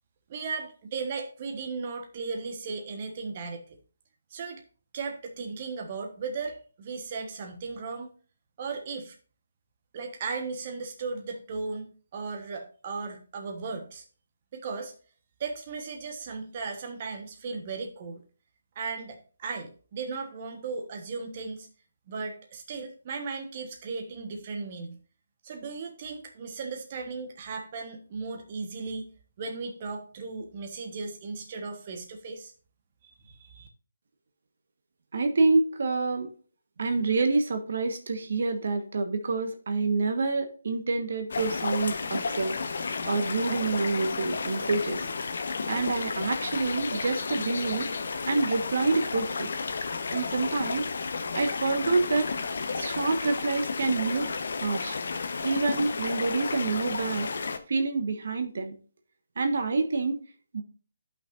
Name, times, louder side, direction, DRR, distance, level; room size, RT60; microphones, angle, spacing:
voice 1, 0.3-3.8 4.3-4.6 4.9-8.1 8.6-9.1 9.9-14.0 14.5-14.9 15.4-18.2 18.7-21.7 22.1-25.0 25.4-29.1 29.4-32.5 33.0-33.7, right 4 dB, 40° right, 3 dB, 1.2 m, -36 dB
voice 2, 35.1-36.3 36.8-42.6 43.0-45.1 45.7-47.9 48.3-49.5 50.1-50.9 51.3-52.3 52.7-54.3 54.6-55.0 55.4-57.3 57.7-58.7 59.4-60.2 60.5-60.6, right 3 dB, 65° right, 7 dB, 1.3 m, -27 dB
sound 1, 41.3-57.6, left 4 dB, 65° left, 1.0 m, -32 dB
12.5 x 5.9 x 2.5 m, 0.39 s
figure-of-eight pair, 150°, 0 cm